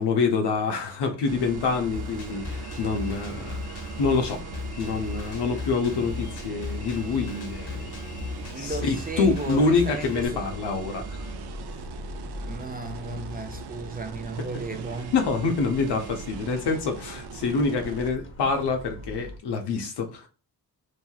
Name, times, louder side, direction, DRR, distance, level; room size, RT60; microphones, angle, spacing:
voice 1, 0.0-4.4 4.8-7.9 8.6-11.3 15.1-20.3, left 4 dB, 90° left, 0.7 m, -26 dB
sound 1, 1.3-18.1, right 6 dB, 75° right, 0.5 m, -40 dB
Drum kit, 1.9-10.3, left 4 dB, 70° left, 1.0 m, -37 dB
sound 2, 5.5-19.4, left 3 dB, 30° left, 0.8 m, -44 dB
voice 2, 8.5-10.5 12.4-15.1, right 3 dB, 25° right, 0.4 m, -35 dB
3.0 x 2.7 x 2.3 m
cardioid pair, 70°, 39 cm